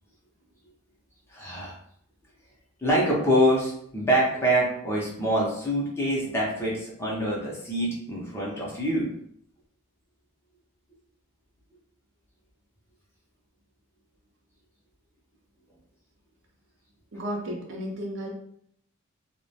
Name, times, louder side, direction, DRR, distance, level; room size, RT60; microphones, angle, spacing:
voice 1, 1.3-1.7 2.8-9.1, equal, 10° left, -4 dB, 0.5 m, -25 dB
voice 2, 17.1-18.3, equal, 55° right, 0 dB, 0.5 m, -33 dB
2.3 x 2.1 x 2.7 m, 0.66 s
head